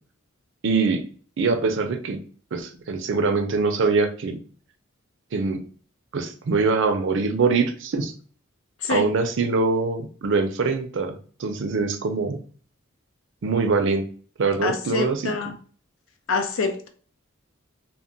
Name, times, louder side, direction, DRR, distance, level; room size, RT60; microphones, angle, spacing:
voice 1, 0.6-1.0 1.4-2.2 2.5-4.4 5.3-5.6 6.1-8.1 8.9-12.4 13.4-14.1 14.4-15.2, right 4 dB, 65° right, 0.4 m, -23 dB
voice 2, 8.8-9.1 14.6-15.6 16.3-16.9, left 4 dB, 80° left, 0.5 m, -26 dB
2.2 x 2.1 x 3.7 m
head